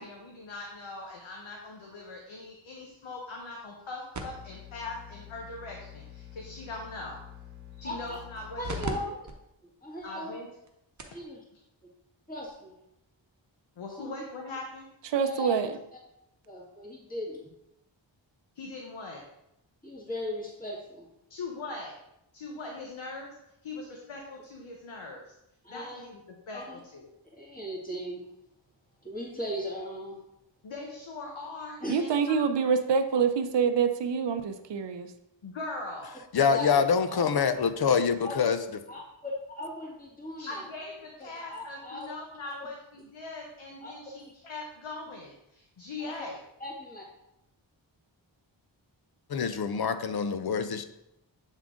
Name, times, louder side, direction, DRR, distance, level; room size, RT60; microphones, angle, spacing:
voice 1, 0.0-7.2 7.8-9.1 10.0-10.5 13.8-14.9 18.5-19.2 21.3-21.9 22.3-23.3 23.6-25.2 25.7-26.2 26.5-27.1 30.6-32.7 35.4-36.2 40.4-46.4, left 2 dB, 85° left, 0 dB, 0.9 m, -41 dB
sound 1, 4.1-8.9 9.3-9.4 10.0-10.1 10.7-10.8 11.0-11.2 12.5-12.6, equal, 40° right, 0.9 m, -42 dB
voice 2, 7.8-8.2 8.6-9.2 9.8-10.4 11.1-11.4 12.3-12.7 14.0-14.1 15.2-15.6 16.5-17.5 19.8-21.1 25.6-26.0 26.5-26.8 27.4-28.2 29.0-30.2 31.8-32.0 36.5-37.6 38.2-38.4 38.9-40.7 41.2-42.1 42.6-42.7 43.8-43.9 46.0-46.1 46.6-47.0, left 1 dB, 20° left, -4 dB, 1.9 m, -38 dB
voice 3, 15.1-15.7 31.9-35.1, right 6 dB, 65° right, 8 dB, 0.6 m, -26 dB
voice 4, 36.3-38.6 49.3-50.8, left 6 dB, 55° left, 10 dB, 0.6 m, -25 dB
7.3 x 3.7 x 3.6 m, 0.84 s
wide cardioid pair, 55°, 46 cm